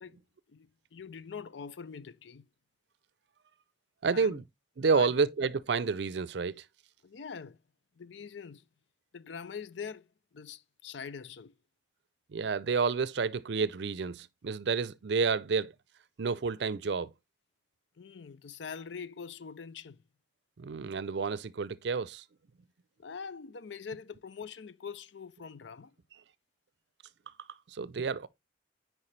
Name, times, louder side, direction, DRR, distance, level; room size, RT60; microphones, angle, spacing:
voice 1, 0.5-2.5 4.1-4.4 4.9-5.1 7.0-7.6 8.0-8.7 9.1-11.5 18.0-20.0 23.0-25.9, left 6 dB, 75° left, 0.5 m, -44 dB
voice 2, 4.0-4.4 4.8-6.6 12.3-15.7 16.2-17.1 20.6-22.2 27.7-28.3, right 5 dB, 70° right, 0.5 m, -30 dB
9.8 x 4.6 x 3.2 m
head